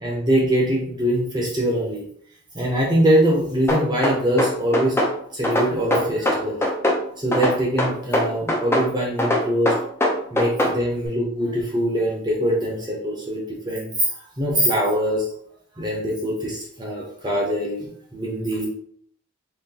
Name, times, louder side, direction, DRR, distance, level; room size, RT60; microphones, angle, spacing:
voice 1, 0.0-2.0 2.5-5.0 5.3-6.6 7.2-9.7 10.3-14.1 14.4-15.2 15.8-17.9 18.1-18.6, equal, 20° right, -4 dB, 0.7 m, -23 dB
sound 1, 3.7-5.1 5.4-7.0 7.3-8.9 9.2-10.8, left 1 dB, 10° left, 0.5 m, -21 dB
3.8 x 2.9 x 2.8 m, 0.63 s
head